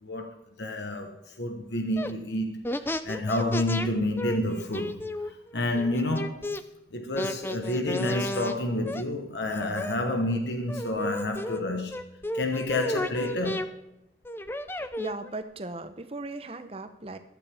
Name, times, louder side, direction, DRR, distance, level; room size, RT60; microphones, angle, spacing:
voice 1, 0.0-6.5 6.9-13.7, left 1 dB, 75° left, 1.2 m, -29 dB
sound 1, 2.0-2.1 2.6-3.9 4.2-6.6 7.2-8.5 8.8-9.0 9.5-10.3 10.7-11.6 11.9-13.7 14.2-15.3, left 1 dB, 10° left, 0.5 m, -33 dB
voice 2, 15.0-17.2, right 2 dB, 30° right, 0.8 m, -37 dB
15.5 x 12.0 x 3.5 m
head